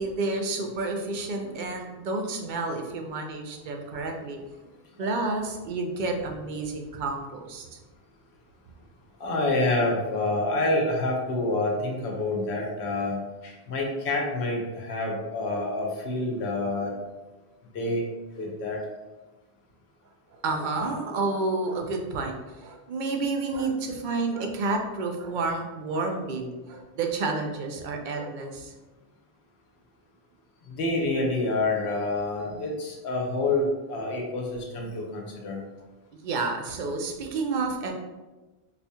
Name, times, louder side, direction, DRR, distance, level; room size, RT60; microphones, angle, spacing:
voice 1, 0.0-4.4 5.0-7.8 20.3-28.7 36.2-37.9, right 3 dB, 60° right, 3 dB, 0.6 m, -30 dB
voice 2, 9.2-13.2 13.4-16.9 17.7-18.0 18.4-18.8 30.7-35.6, left 2 dB, 90° left, 0 dB, 1.0 m, -27 dB
4.1 x 2.7 x 2.2 m, 1.2 s
omnidirectional pair, 1.1 m